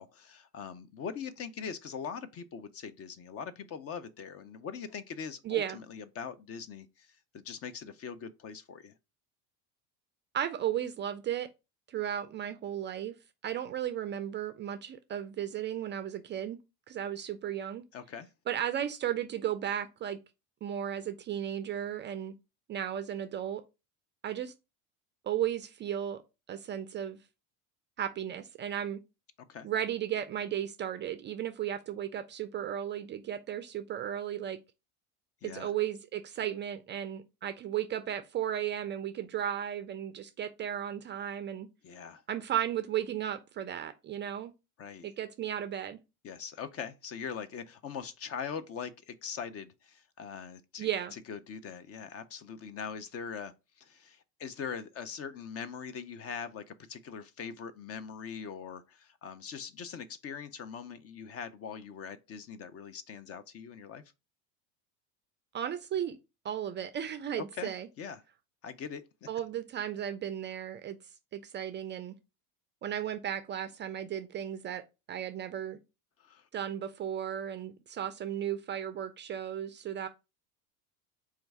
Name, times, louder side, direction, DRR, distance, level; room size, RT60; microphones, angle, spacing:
voice 1, 0.0-7.1 7.3-8.9 17.9-18.3 29.5-29.7 35.4-35.7 41.8-42.2 44.8-45.1 46.2-53.5 53.8-64.0 67.4-67.7 68.0-68.2 68.6-69.3 76.2-76.4, left 6 dB, 35° left, 0.5 m, -42 dB
voice 2, 5.4-5.8 10.3-11.5 11.9-13.1 13.4-16.6 16.9-17.8 18.5-20.2 20.6-22.3 22.7-23.6 24.2-24.5 25.2-26.2 26.5-27.2 28.0-29.0 29.6-34.6 35.4-41.7 42.3-44.5 45.0-46.0 50.8-51.1 65.5-66.2 66.4-67.9 69.3-71.0 71.3-72.2 72.8-74.8 75.1-75.8 76.5-80.1, right 10 dB, 25° right, 0.4 m, -35 dB
4.3 x 2.4 x 3.9 m
hypercardioid pair, 90°, 44 cm